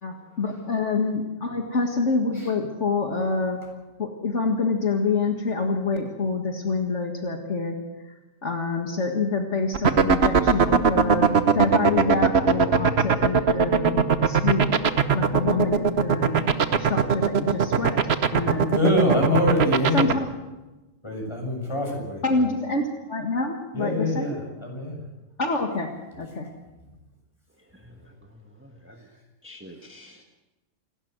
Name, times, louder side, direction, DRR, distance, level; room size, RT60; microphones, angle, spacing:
voice 1, 0.0-3.6 4.0-7.8 8.4-14.7 15.1-16.5 16.8-17.9 18.3-18.7 19.9-20.3 22.2-24.4 25.4-26.5, left 4 dB, 65° left, 3 dB, 2.1 m, -27 dB
sound 1, 9.7-20.1, right 6 dB, 55° right, 1.2 m, -18 dB
voice 2, 18.7-20.2 21.0-22.2 23.7-25.0, left 1 dB, 20° left, 0 dB, 6.8 m, -24 dB
voice 3, 27.7-29.0 29.4-30.2, left 1 dB, 10° right, 3 dB, 1.5 m, -48 dB
28.0 x 12.0 x 8.0 m, 1.1 s
omnidirectional pair, 1.4 m